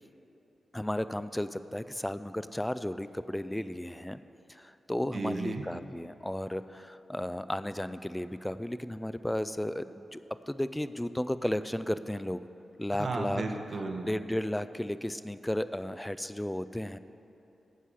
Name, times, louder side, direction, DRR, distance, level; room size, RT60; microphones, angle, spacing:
voice 1, 0.7-4.2 4.5-10.2 10.5-12.5 12.8-13.4 14.0-17.0, left 1 dB, 10° left, 13 dB, 0.4 m, -34 dB
voice 2, 5.1-5.6 12.9-14.1, right 3 dB, 60° right, 3 dB, 1.1 m, -34 dB
11.5 x 4.8 x 8.4 m, 3.0 s
cardioid pair, 55°, 0 cm